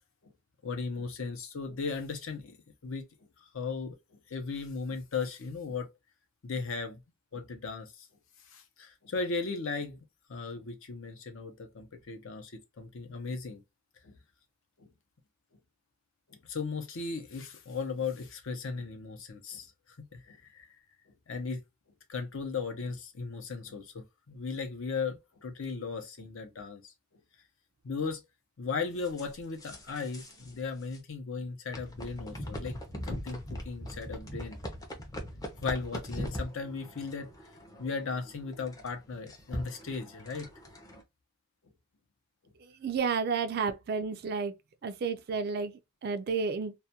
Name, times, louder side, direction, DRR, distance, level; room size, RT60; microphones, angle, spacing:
voice 1, 0.6-2.6 2.8-5.9 6.4-7.0 7.3-8.1 8.4-10.0 10.3-13.6 14.0-14.2 14.8-14.9 16.3-20.7 21.1-21.6 22.1-27.2 27.8-28.2 28.6-34.6 35.5-37.3 37.8-40.5 42.4-42.5, left 4 dB, 60° left, 0.6 m, -37 dB
sound 1, 29.0-30.5 30.8-31.0 31.7-41.0, equal, 15° left, 0.5 m, -41 dB
voice 2, 42.6-44.6 44.8-46.8, right 5 dB, 45° right, 0.3 m, -32 dB
2.3 x 2.2 x 2.7 m
head